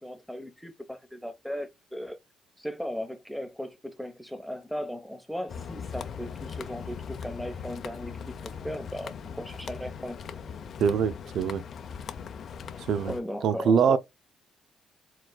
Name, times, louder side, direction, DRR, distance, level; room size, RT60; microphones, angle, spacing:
voice 1, 0.0-2.2 2.6-8.1 8.4-10.2 13.0-14.0, equal, ahead, 1.0 m, -37 dB
sound 1, 5.5-13.2, left 6 dB, 55° left, 0.6 m, -40 dB
voice 2, 10.8-11.6 12.8-13.1 13.4-14.0, right 7 dB, 70° right, 0.4 m, -24 dB
4.6 x 3.9 x 2.2 m
cardioid pair, 90°, 0 cm